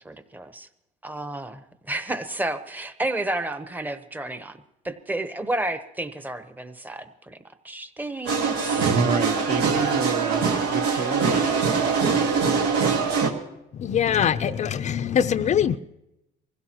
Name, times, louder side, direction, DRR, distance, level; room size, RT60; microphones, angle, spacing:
voice 1, 0.0-0.7 1.0-4.6 4.8-7.4 7.6-8.9, right 2 dB, 10° right, 0.9 m, -31 dB
sound 1, 8.2-13.3, right 5 dB, 90° right, 1.7 m, -23 dB
voice 2, 8.8-11.5, right 4 dB, 50° right, 1.1 m, -28 dB
voice 3, 13.7-15.8, left 8 dB, 45° left, 0.5 m, -23 dB
23.5 x 16.0 x 3.0 m
cardioid pair, 110°, 17 cm